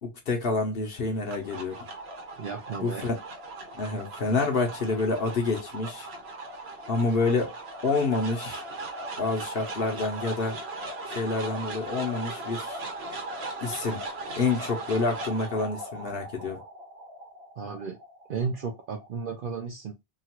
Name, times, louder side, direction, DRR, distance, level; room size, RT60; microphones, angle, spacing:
voice 1, 0.0-1.8 2.8-3.1 3.7-6.1 6.9-7.5 7.8-8.6 9.2-10.6 11.1-12.8 13.6-14.0 14.4-16.6, left 3 dB, 65° left, 1.0 m, -28 dB
sound 1, 0.9-19.3, right 2 dB, 80° right, 1.0 m, -39 dB
voice 2, 2.4-3.0 17.6-18.0 18.3-19.9, right 5 dB, 60° right, 0.7 m, -33 dB
3.0 x 2.4 x 2.9 m
omnidirectional pair, 1.1 m